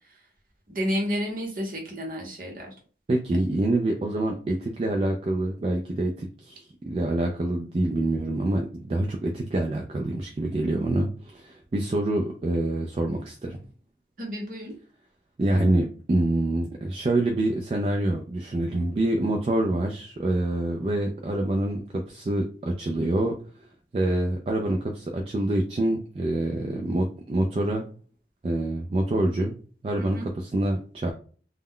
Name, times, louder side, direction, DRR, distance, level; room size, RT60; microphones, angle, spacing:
voice 1, 0.7-2.7 14.2-14.7 30.0-30.3, equal, 50° right, 0 dB, 0.8 m, -31 dB
voice 2, 3.1-13.6 15.4-23.4 23.9-27.9 28.4-29.5 29.8-31.1, right 1 dB, 35° right, 1 dB, 0.3 m, -26 dB
2.2 x 2.1 x 3.5 m, 0.42 s
head